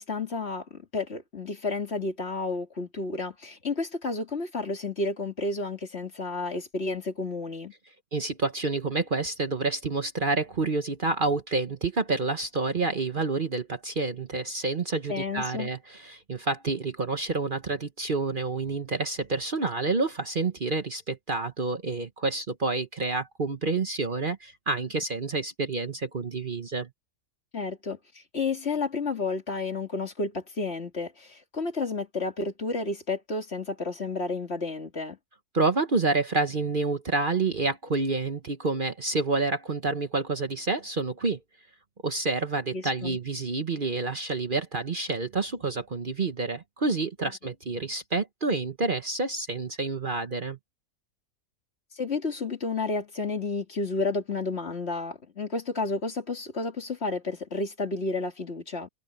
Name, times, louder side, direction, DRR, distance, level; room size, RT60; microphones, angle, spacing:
voice 1, 0.0-7.7 15.1-15.7 27.5-35.2 42.7-43.2 47.2-47.3 52.0-58.9, left 3 dB, 50° left, 2.6 m, -31 dB
voice 2, 8.1-26.9 35.5-41.4 42.0-50.6, right 3 dB, 40° right, 1.1 m, -28 dB
omnidirectional pair, 1.5 m